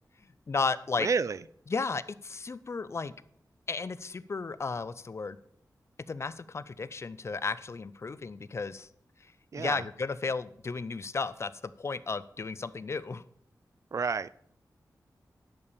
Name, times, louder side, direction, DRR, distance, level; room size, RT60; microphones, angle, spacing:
voice 1, 0.5-1.1 1.7-3.1 3.7-5.4 6.1-8.9 9.5-11.5 11.8-13.2, left 4 dB, 40° left, 0.5 m, -34 dB
voice 2, 1.0-1.4 9.5-9.8 13.9-14.3, right 5 dB, 50° right, 0.4 m, -29 dB
10.5 x 5.6 x 6.9 m
wide cardioid pair, 135°, 7 cm